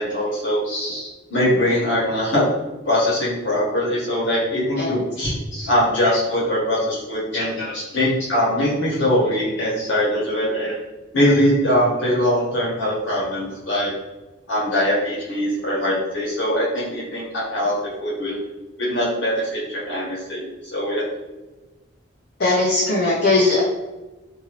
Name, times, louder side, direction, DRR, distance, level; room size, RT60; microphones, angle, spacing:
voice 1, 0.0-2.5 2.8-10.8 11.1-13.9 14.5-18.4 18.8-21.1, left 1 dB, 70° left, -5 dB, 1.1 m, -22 dB
voice 2, 22.4-23.7, left 2 dB, 55° left, -4 dB, 0.5 m, -18 dB
2.7 x 2.6 x 2.9 m, 1.1 s
head